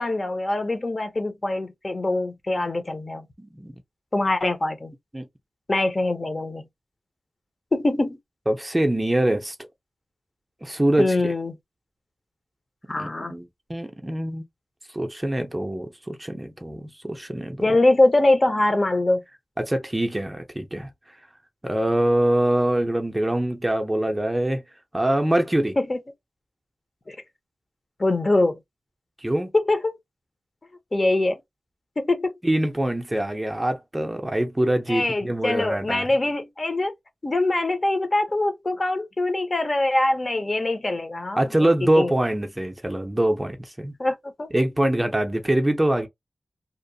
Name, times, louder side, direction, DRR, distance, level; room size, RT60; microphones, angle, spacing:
voice 1, 0.0-3.3 4.1-4.9 5.7-6.6 7.7-8.2 11.0-11.6 12.9-13.3 17.6-19.2 25.9-26.0 27.1-27.2 28.0-28.6 29.5-30.0 30.9-31.4 32.0-32.3 34.9-36.9 37.2-41.4 42.0-42.1 44.0-44.5, left 2 dB, 35° left, 0.7 m, -23 dB
voice 2, 3.4-3.8 5.1-5.3 8.5-9.7 10.6-11.3 13.0-14.5 14.9-17.6 19.6-20.9 21.6-24.6 24.9-25.8 29.2-29.5 32.4-36.1 41.4-43.9 44.5-46.1, right 1 dB, 15° right, 0.5 m, -24 dB
2.8 x 2.0 x 2.6 m
wide cardioid pair, 90°, 0 cm